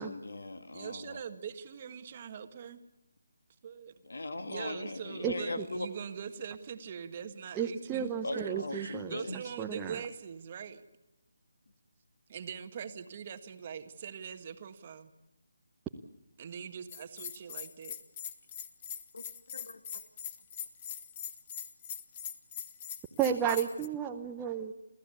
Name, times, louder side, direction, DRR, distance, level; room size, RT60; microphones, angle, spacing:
voice 1, 0.0-1.2 4.0-5.9 8.2-9.4 19.1-19.2 19.5-19.8, left 2 dB, 80° left, 9 dB, 2.3 m, -39 dB
voice 2, 0.7-2.8 3.6-3.9 4.4-10.8 12.3-15.1 16.4-17.9, right 7 dB, 30° right, 9 dB, 1.6 m, -42 dB
voice 3, 5.2-5.6 7.5-9.1 9.6-10.0 23.2-24.7, right 8 dB, 10° right, 3 dB, 0.9 m, -33 dB
Bell, 16.9-23.9, left 8 dB, 25° left, 1.4 m, -42 dB
29.5 x 14.5 x 8.4 m, 0.96 s
figure-of-eight pair, 165°, 0 cm